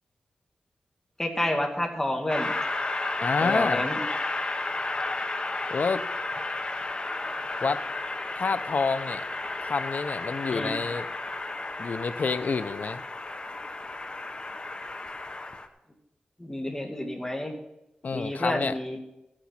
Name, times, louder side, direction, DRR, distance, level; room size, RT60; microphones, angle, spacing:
voice 1, 1.2-2.5 3.4-4.0 10.5-10.7 16.4-17.6 18.1-19.0, left 1 dB, 15° left, 2 dB, 2.1 m, -29 dB
Train, 2.3-15.7, left 2 dB, 35° left, 1.0 m, -33 dB
voice 2, 3.2-3.9 5.7-6.0 7.6-7.8 8.3-9.2 9.6-11.0 11.8-13.0 18.0-18.7, left 4 dB, 60° left, 12 dB, 0.7 m, -28 dB
14.5 x 9.0 x 5.7 m, 0.90 s
wide cardioid pair, 100°, 3 cm